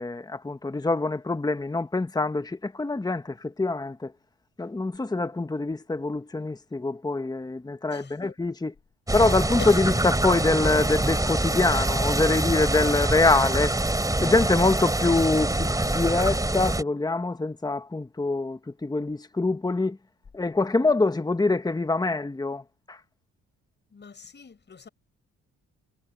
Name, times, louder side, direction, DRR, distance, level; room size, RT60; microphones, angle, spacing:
voice 1, 0.0-4.1 4.6-8.7 9.1-13.8 14.2-20.0 20.3-23.0, left 3 dB, 15° left, 1.4 m, -25 dB
voice 2, 7.9-8.3 9.6-10.0 23.9-24.9, left 5 dB, 35° left, 7.8 m, -41 dB
sound 1, 9.1-16.8, right 2 dB, 10° right, 4.0 m, -25 dB
cardioid pair, 90°, 30 cm